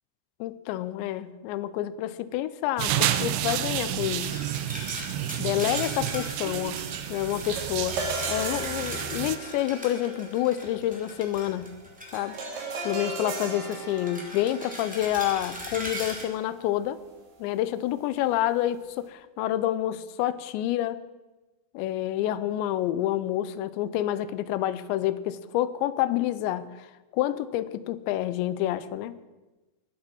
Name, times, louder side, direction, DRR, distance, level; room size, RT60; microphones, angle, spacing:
voice 1, 0.4-4.4 5.4-11.7 12.1-12.4 12.8-17.0 17.4-21.0 21.7-26.9 27.1-29.2, left 13 dB, 80° left, 15 dB, 2.8 m, -28 dB
sound 1, 2.8-9.4, right 12 dB, 85° right, 2.1 m, -30 dB
sound 2, 4.0-12.6 12.9-16.2, equal, 5° right, 1.7 m, -40 dB
sound 3, 7.4-16.8, right 3 dB, 60° right, 4.2 m, -37 dB
22.0 x 8.7 x 6.2 m, 1.1 s
omnidirectional pair, 5.3 m